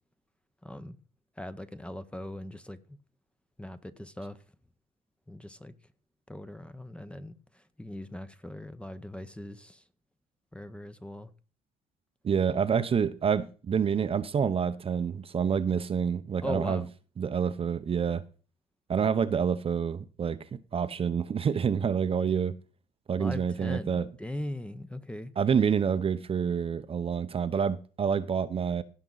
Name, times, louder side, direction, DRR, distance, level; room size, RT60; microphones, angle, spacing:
voice 1, 0.6-1.0 1.4-3.0 3.6-4.4 5.3-5.7 6.3-9.8 10.5-11.3 16.4-16.8 23.2-25.3, left 1 dB, 5° left, 0.7 m, -40 dB
voice 2, 12.2-16.8 17.2-18.2 18.9-22.5 23.1-24.1 25.4-28.8, right 7 dB, 35° right, 0.7 m, -27 dB
17.0 x 6.0 x 4.0 m
cardioid pair, 110°, 17 cm